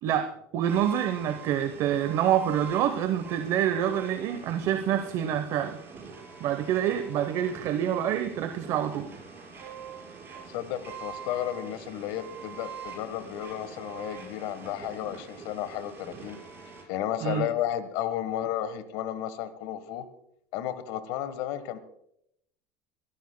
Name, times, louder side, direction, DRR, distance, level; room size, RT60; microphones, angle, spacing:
voice 1, 0.0-5.8 6.4-9.1 17.2-17.5, right 10 dB, 55° right, 9 dB, 0.9 m, -27 dB
sound 1, 0.6-16.8, right 6 dB, 30° right, 5.0 m, -44 dB
voice 2, 10.5-16.4 16.9-20.1 20.5-21.8, left 11 dB, 75° left, 13 dB, 1.3 m, -33 dB
27.5 x 13.0 x 2.2 m, 0.75 s
supercardioid pair, 120°, 7 cm